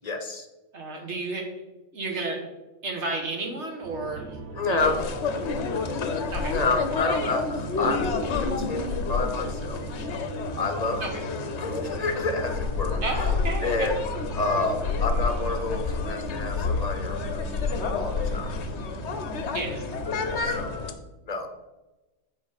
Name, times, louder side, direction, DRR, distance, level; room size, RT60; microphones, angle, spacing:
voice 1, 0.0-0.5 4.5-5.0 6.5-8.1 8.3-9.8 10.6-11.2 11.6-13.3 13.6-14.0 14.4-17.4 17.9-18.6 20.1-20.8 21.3-21.5, left 3 dB, 35° left, 6 dB, 0.8 m, -29 dB
voice 2, 0.7-1.5 1.9-2.5 2.8-4.4 4.7-5.0 6.3-6.5 11.0-11.1 13.0-13.9 19.5-19.9, right 3 dB, 55° right, 2 dB, 1.7 m, -32 dB
sound 1, 3.8-20.8, right 3 dB, 85° right, 1.2 m, -39 dB
sound 2, 4.8-20.9, left 5 dB, 60° left, 1.0 m, -29 dB
8.3 x 4.7 x 5.2 m, 1.1 s
omnidirectional pair, 1.4 m